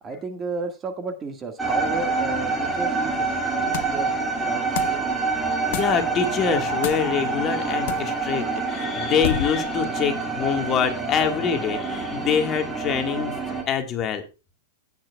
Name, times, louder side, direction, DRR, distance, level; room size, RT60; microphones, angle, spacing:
voice 1, 0.0-3.3 3.6-4.1 4.4-5.1, right 4 dB, 20° right, 6 dB, 1.7 m, -33 dB
sound 1, 1.6-13.6, right 3 dB, 5° right, 2.2 m, -26 dB
sound 2, 3.7-4.1 4.7-5.0 5.7-6.0 6.8-7.1 7.9-8.1 9.2-9.7, left 13 dB, 60° left, 0.6 m, -29 dB
voice 2, 5.7-13.4 13.7-14.2, left 7 dB, 30° left, 6 dB, 1.6 m, -25 dB
16.0 x 8.2 x 2.3 m, 0.30 s
supercardioid pair, 135°, 0 cm